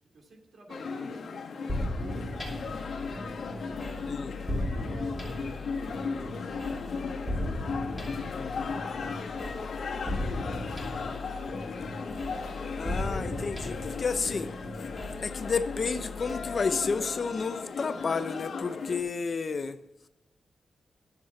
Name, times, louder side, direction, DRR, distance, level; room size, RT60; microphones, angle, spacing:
voice 1, 0.1-3.4 3.6-8.0 8.7-10.6, right 2 dB, 65° right, 2.6 m, -52 dB
sound 1, 0.7-19.0, left 5 dB, 70° left, 1.6 m, -36 dB
sound 2, 1.7-17.3, left 1 dB, 10° left, 2.6 m, -37 dB
voice 2, 8.3-8.8 12.8-14.5 15.2-19.8, left 5 dB, 45° left, 0.6 m, -31 dB
10.5 x 7.4 x 5.7 m
wide cardioid pair, 130°, 0 cm